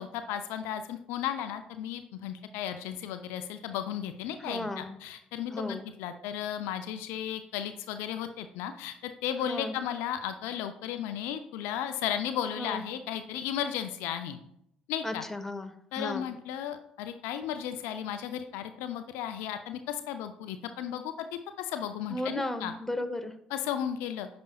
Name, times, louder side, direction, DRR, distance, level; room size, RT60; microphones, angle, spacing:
voice 1, 0.0-14.4 14.9-15.2 15.9-21.3 21.6-22.7 23.5-24.3, left 10 dB, 70° left, 8 dB, 0.4 m, -35 dB
voice 2, 4.4-5.0 5.5-5.9 9.5-9.7 12.6-12.8 15.0-16.3 22.1-23.3, left 1 dB, 10° left, 7 dB, 0.9 m, -35 dB
10.0 x 5.1 x 2.3 m, 0.74 s
hypercardioid pair, 50°, 4 cm